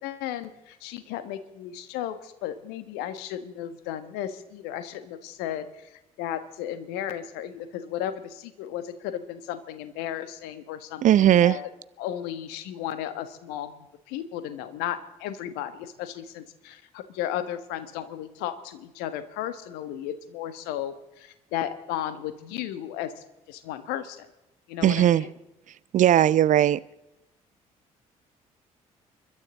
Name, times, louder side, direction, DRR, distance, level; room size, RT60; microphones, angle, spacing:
voice 1, 0.0-11.7 12.0-13.8 14.1-24.3 24.7-25.3, left 11 dB, 65° left, 1.4 m, -34 dB
voice 2, 11.0-11.6 24.8-25.3 25.9-26.8, right 11 dB, 45° right, 0.6 m, -18 dB
29.0 x 12.5 x 3.9 m
figure-of-eight pair, 50°, 18 cm